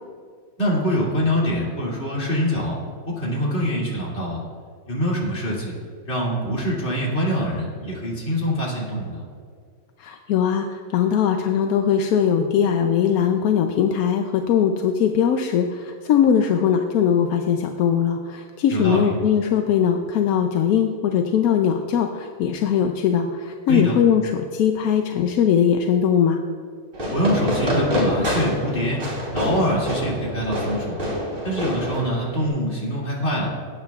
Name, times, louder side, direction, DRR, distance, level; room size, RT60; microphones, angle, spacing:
voice 1, 0.6-2.8 3.2-4.4 4.9-5.7 6.1-9.2 18.7-19.1 23.7-24.0 27.1-29.0 29.3-31.0 31.4-33.5, equal, 40° left, -5 dB, 2.8 m, -24 dB
voice 2, 10.0-26.4, left 8 dB, 70° left, 5 dB, 0.9 m, -20 dB
Fireworks, 26.9-32.5, equal, 30° right, 3.1 m, -26 dB
18.5 x 8.8 x 2.3 m, 2.2 s
omnidirectional pair, 1.9 m